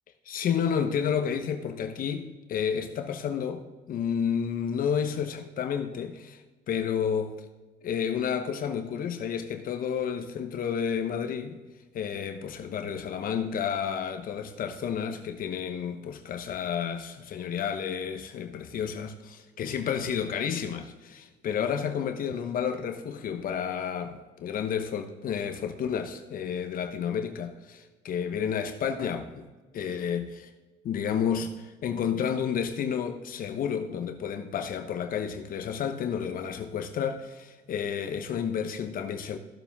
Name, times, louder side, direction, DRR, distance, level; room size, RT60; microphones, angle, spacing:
voice 1, 0.3-6.4 6.7-7.3 7.8-11.6 11.9-29.5 29.7-30.5 30.8-39.4, left 7 dB, 55° left, 1.0 m, -31 dB
15.5 x 7.2 x 3.6 m
cardioid pair, 110°, 17 cm